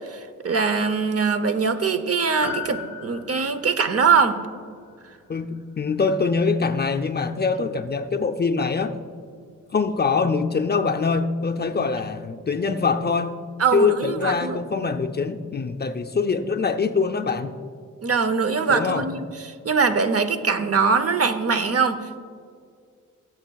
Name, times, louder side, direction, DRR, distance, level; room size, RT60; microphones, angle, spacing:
voice 1, 0.1-4.4 13.6-14.6 18.0-19.2 19.6-22.2, right 5 dB, 50° right, 9 dB, 0.7 m, -22 dB
Piano, 2.4-7.0 7.3-7.4, left 4 dB, 5° right, 2.4 m, -39 dB
voice 2, 5.3-9.0 9.7-13.4 13.7-17.5 18.7-19.1, left 4 dB, 30° left, 5 dB, 0.5 m, -23 dB
19.0 x 8.1 x 2.3 m, 2.2 s
wide cardioid pair, 90°, 31 cm